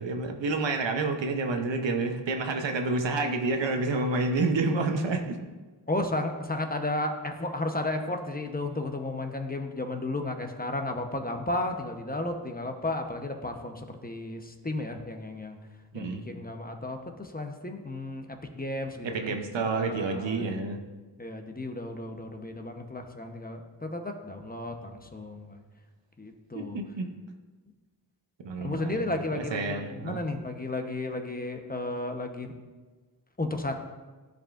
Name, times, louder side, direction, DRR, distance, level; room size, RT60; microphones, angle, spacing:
voice 1, 0.0-5.4 15.9-16.2 19.0-20.8 26.5-27.1 28.4-30.2, right 3 dB, 90° right, 5 dB, 0.8 m, -29 dB
voice 2, 5.9-15.6 15.9-19.4 19.6-20.6 21.2-25.6 26.2-26.8 28.6-32.5 33.4-33.8, left 2 dB, 20° left, 4 dB, 0.8 m, -33 dB
12.5 x 5.2 x 2.5 m, 1.3 s
wide cardioid pair, 60°, 43 cm